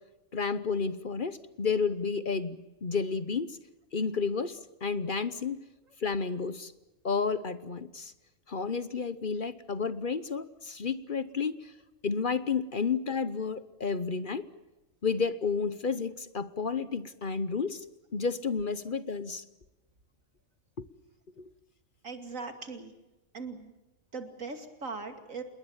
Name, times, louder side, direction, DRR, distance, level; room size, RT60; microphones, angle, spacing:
voice 1, 0.3-3.6 3.9-5.6 6.0-6.7 7.0-8.1 8.5-11.7 12.0-14.5 15.0-17.8 18.1-19.4 20.8-20.9 21.4-21.5, left 5 dB, 45° left, 14 dB, 1.1 m, -31 dB
voice 2, 22.0-22.9 23.3-23.7 24.1-25.4, right 4 dB, 80° right, 7 dB, 2.9 m, -39 dB
27.5 x 21.0 x 7.3 m, 1.0 s
omnidirectional pair, 1.3 m